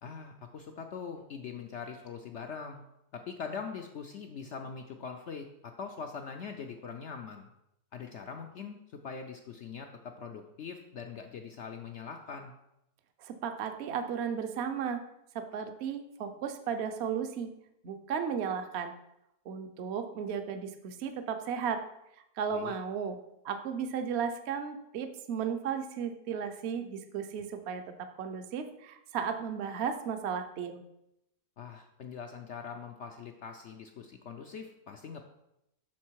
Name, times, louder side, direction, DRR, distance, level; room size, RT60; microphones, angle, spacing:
voice 1, 0.0-2.9 3.1-7.5 7.9-12.5 22.5-22.7 31.6-35.2, left 6 dB, 70° left, 5 dB, 0.7 m, -42 dB
voice 2, 13.2-15.0 15.3-17.5 17.8-18.9 19.5-21.8 22.4-23.2 23.4-30.8, right 7 dB, 55° right, 8 dB, 0.8 m, -35 dB
7.5 x 6.3 x 4.6 m, 0.84 s
omnidirectional pair, 1.8 m